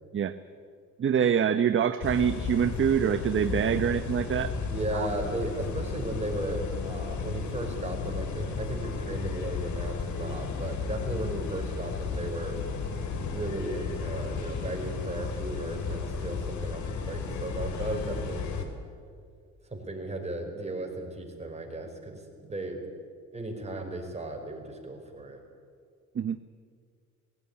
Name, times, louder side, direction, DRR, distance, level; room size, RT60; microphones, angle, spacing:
voice 1, 1.0-4.5 4.9-5.1 26.1-26.4, right 8 dB, 45° right, 11 dB, 0.9 m, -25 dB
sound 1, 2.0-18.6, left 5 dB, 70° left, 3.0 m, -34 dB
voice 2, 4.7-12.6 13.3-18.5 19.7-22.8 23.3-25.4, right 2 dB, 20° right, 2 dB, 4.9 m, -35 dB
19.0 x 16.0 x 9.7 m, 2.1 s
cardioid pair, 90°, 30 cm